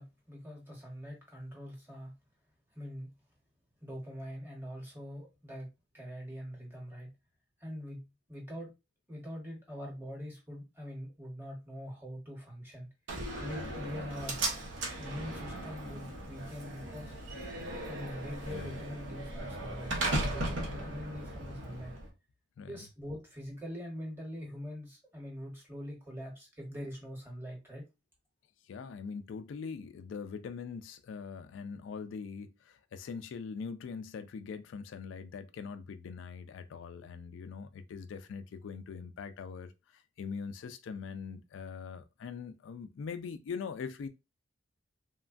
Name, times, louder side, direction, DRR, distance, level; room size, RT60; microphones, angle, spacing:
voice 1, 0.0-2.1 2.7-3.1 3.8-5.7 5.9-7.1 7.6-8.7 9.1-12.9 13.4-14.4 15.0-17.1 17.9-21.9 22.7-27.8, equal, 10° right, 1.0 m, -43 dB
Slam, 13.1-22.1, right 1 dB, 80° right, 0.9 m, -37 dB
voice 2, 18.5-18.8 22.6-22.8 28.6-44.1, left 5 dB, 80° left, 0.3 m, -42 dB
3.1 x 2.2 x 2.5 m
head